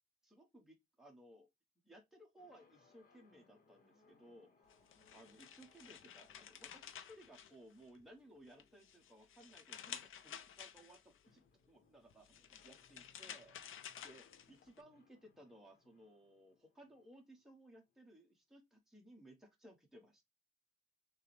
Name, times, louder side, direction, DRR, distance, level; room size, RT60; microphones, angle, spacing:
voice 1, 0.2-1.5 1.8-4.9 5.1-13.6 14.0-20.2, right 1 dB, ahead, 1.2 m, -61 dB
sound 1, 2.4-18.1, left 4 dB, 45° left, 1.0 m, -73 dB
sound 2, 4.7-8.1 8.5-11.2 12.1-14.8, left 9 dB, 80° left, 0.5 m, -53 dB
6.5 x 2.2 x 3.3 m
wide cardioid pair, 145°, 21 cm